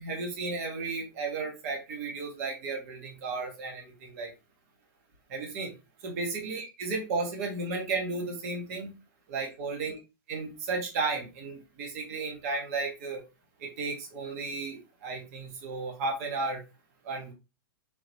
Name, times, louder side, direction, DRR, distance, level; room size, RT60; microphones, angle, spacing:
voice 1, 0.0-4.3 5.3-5.7 6.0-8.9 9.3-9.9 10.3-13.2 13.6-16.6 17.0-17.3, right 3 dB, 40° right, 2 dB, 1.3 m, -34 dB
3.9 x 3.8 x 3.1 m, 0.27 s
supercardioid pair, 165°, 12 cm